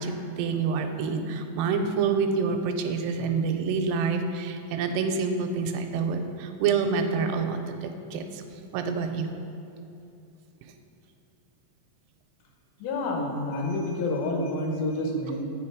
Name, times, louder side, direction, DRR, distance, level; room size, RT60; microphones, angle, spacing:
voice 1, 0.0-8.4 8.7-9.4, right 5 dB, 85° right, 6 dB, 2.2 m, -27 dB
voice 2, 12.8-15.4, left 2 dB, 90° left, 1 dB, 2.8 m, -28 dB
8.2 x 5.0 x 4.8 m, 2.8 s
omnidirectional pair, 4.1 m